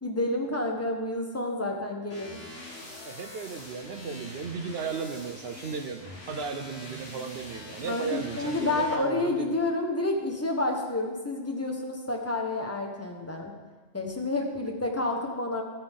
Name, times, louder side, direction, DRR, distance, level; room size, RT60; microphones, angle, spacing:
voice 1, 0.0-2.4 7.8-13.5 13.9-15.6, left 2 dB, 15° left, 1 dB, 1.1 m, -29 dB
sound 1, 2.1-8.9, left 1 dB, 55° left, 2.1 m, -44 dB
voice 2, 3.0-9.6, right 5 dB, 60° right, 7 dB, 0.8 m, -36 dB
13.0 x 8.7 x 3.7 m, 1.3 s
omnidirectional pair, 1.3 m